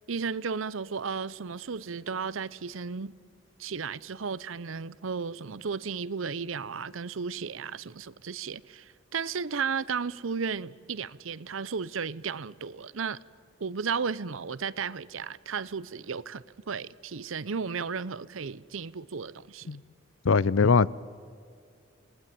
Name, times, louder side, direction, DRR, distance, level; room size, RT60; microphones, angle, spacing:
voice 1, 0.1-3.1 3.6-13.2 13.6-19.7, right 5 dB, 90° right, 0.7 m, -34 dB
voice 2, 20.2-20.9, left 5 dB, 85° left, 0.6 m, -21 dB
28.0 x 19.0 x 9.2 m
head